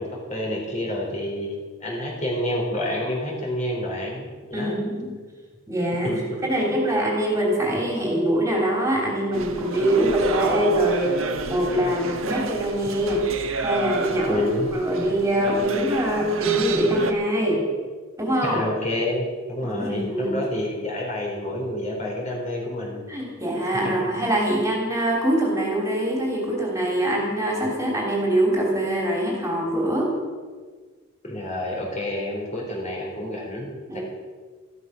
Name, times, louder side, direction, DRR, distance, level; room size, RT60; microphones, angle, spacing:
voice 1, 0.0-1.5 1.8-4.8 6.0-6.4 14.2-14.7 16.2-16.9 18.4-23.0 23.8-24.1 31.2-34.0, left 1 dB, 35° left, -2 dB, 4.3 m, -29 dB
voice 2, 4.5-5.1 5.7-13.3 13.6-14.4 14.7-17.7 18.2-18.6 19.6-20.4 23.1-30.1 33.9-34.0, right 1 dB, 15° right, -1 dB, 3.2 m, -23 dB
sound 1, 9.3-17.1, right 3 dB, 85° right, 1.4 m, -30 dB
14.5 x 13.0 x 6.3 m, 1.5 s
head